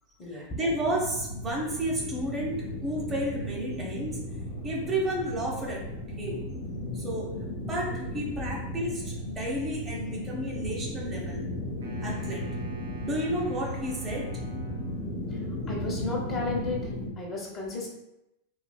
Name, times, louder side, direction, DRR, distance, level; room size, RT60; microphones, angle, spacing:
voice 1, 0.3-4.3 4.6-5.9 6.2-6.4 6.9-11.5 12.0-12.5 13.0-14.4, right 1 dB, 20° right, -3 dB, 0.6 m, -32 dB
sound 1, 0.6-17.1, left 1 dB, 50° left, 0.5 m, -36 dB
Wind instrument woodwind instrument, 11.8-15.3, right 4 dB, 70° right, 0.5 m, -47 dB
voice 2, 15.3-17.9, left 2 dB, 30° left, -2 dB, 0.9 m, -34 dB
3.2 x 2.7 x 2.2 m, 0.88 s
figure-of-eight pair, 90°, 0 cm